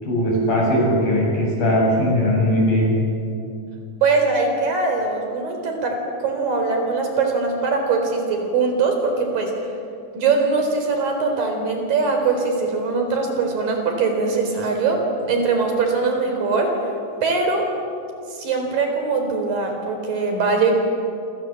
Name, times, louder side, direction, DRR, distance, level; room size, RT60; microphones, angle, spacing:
voice 1, 0.0-2.9, equal, 75° left, -2 dB, 9.8 m, -19 dB
voice 2, 4.0-9.5 10.1-16.8 17.2-17.7 18.3-20.7, right 4 dB, 70° right, 4 dB, 5.7 m, -21 dB
27.0 x 27.0 x 7.7 m, 2.6 s
omnidirectional pair, 4.2 m